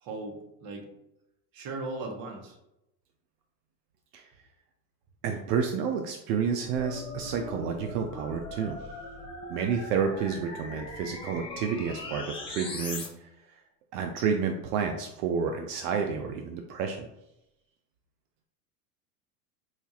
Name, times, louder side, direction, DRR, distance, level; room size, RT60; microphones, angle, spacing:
voice 1, 0.0-0.9 1.5-2.6, right 3 dB, 45° right, 3 dB, 1.0 m, -37 dB
voice 2, 5.2-8.8 9.5-13.6 13.9-17.1, right 6 dB, 75° right, 5 dB, 0.6 m, -30 dB
sound 1, 6.7-13.1, left 2 dB, 10° left, 0.6 m, -40 dB
4.3 x 2.4 x 2.8 m, 0.87 s
supercardioid pair, 110°, 48 cm